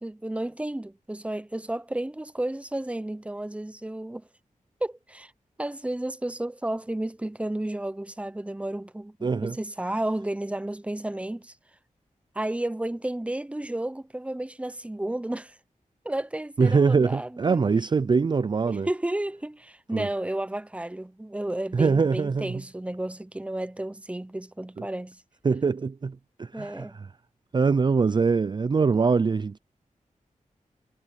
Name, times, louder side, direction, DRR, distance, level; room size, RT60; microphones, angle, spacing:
voice 1, 0.0-4.3 4.8-5.3 5.6-11.5 12.3-15.6 16.0-17.6 18.7-25.2 26.5-27.0, right 1 dB, 10° right, 0.7 m, -32 dB
voice 2, 9.2-9.6 16.6-18.9 19.9-20.1 21.7-22.6 24.8-24.9 25.4-26.9 27.5-29.6, right 5 dB, 35° right, 0.4 m, -23 dB
wide cardioid pair, 90°, 13 cm